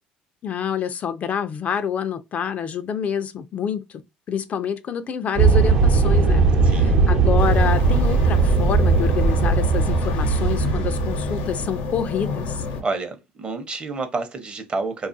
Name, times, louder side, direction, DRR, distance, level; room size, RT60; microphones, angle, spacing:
voice 1, 0.4-4.0 4.3-12.6, left 7 dB, 45° left, 0.3 m, -27 dB
sound 1, 5.4-11.8, right 4 dB, 70° right, 0.8 m, -18 dB
voice 2, 6.6-7.0 12.8-15.1, right 3 dB, 35° right, 0.7 m, -29 dB
sound 2, 7.4-12.8, left 4 dB, 85° left, 0.7 m, -29 dB
2.4 x 2.3 x 2.5 m
supercardioid pair, 85°, 3 cm